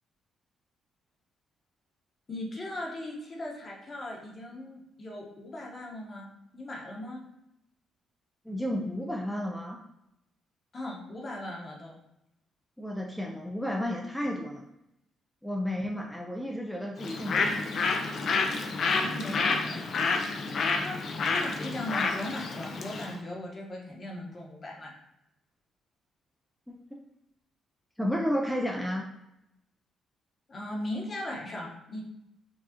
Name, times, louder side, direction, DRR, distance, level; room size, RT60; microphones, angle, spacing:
voice 1, 2.3-6.3 6.5-7.2 10.7-11.9 18.9-19.9 20.7-24.9 30.5-32.0, left 1 dB, 40° left, -2 dB, 1.0 m, -38 dB
voice 2, 8.5-9.8 12.8-14.6 15.4-17.6 26.7-27.0 28.0-29.1, equal, 5° left, -1 dB, 0.4 m, -32 dB
Bird, 17.0-23.1, left 4 dB, 60° left, 0.5 m, -29 dB
4.7 x 2.4 x 2.8 m, 0.85 s
cardioid pair, 90°, 0 cm